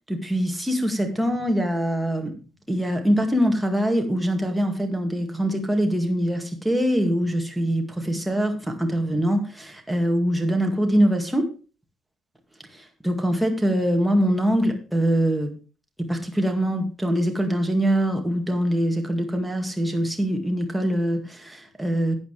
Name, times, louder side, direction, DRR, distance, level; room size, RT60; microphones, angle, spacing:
voice 1, 0.1-2.3 2.7-11.5 12.7-15.5 16.0-22.2, equal, 5° right, 3 dB, 2.1 m, -23 dB
11.5 x 8.9 x 3.3 m, 0.34 s
cardioid pair, 90°, 0 cm